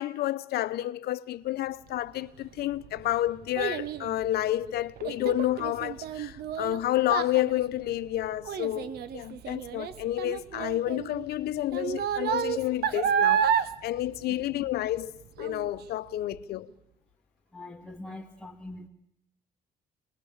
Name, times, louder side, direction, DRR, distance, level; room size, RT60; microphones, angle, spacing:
voice 1, 0.0-13.5 13.8-15.1 15.4-16.7, left 14 dB, 70° left, 0.8 m, -30 dB
Child speech kid speaking, 2.4-15.0 15.4-15.8 16.3-16.4, right 8 dB, 70° right, 1.2 m, -31 dB
voice 2, 17.5-18.9, left 2 dB, ahead, 2.2 m, -42 dB
24.5 x 20.5 x 7.3 m
cardioid pair, 110°, 17 cm